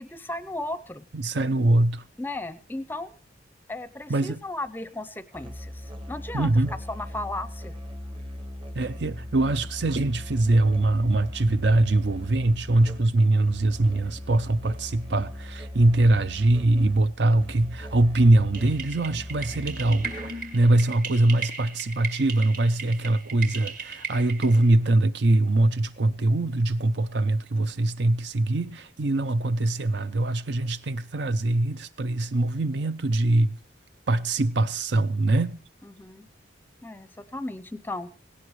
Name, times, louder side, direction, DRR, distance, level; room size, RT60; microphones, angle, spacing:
voice 1, 0.0-1.1 2.2-3.2 3.7-7.7 35.8-36.3 36.8-38.1, left 2 dB, 10° left, 0.6 m, -35 dB
voice 2, 1.1-2.0 4.1-4.4 6.3-6.7 8.7-20.1 20.5-33.6 34.1-35.6, right 2 dB, 60° right, 0.6 m, -23 dB
Musical instrument, 5.3-20.7, left 1 dB, 25° right, 1.1 m, -39 dB
sound 1, 18.5-24.7, right 5 dB, 45° right, 2.0 m, -37 dB
17.5 x 17.0 x 3.2 m
head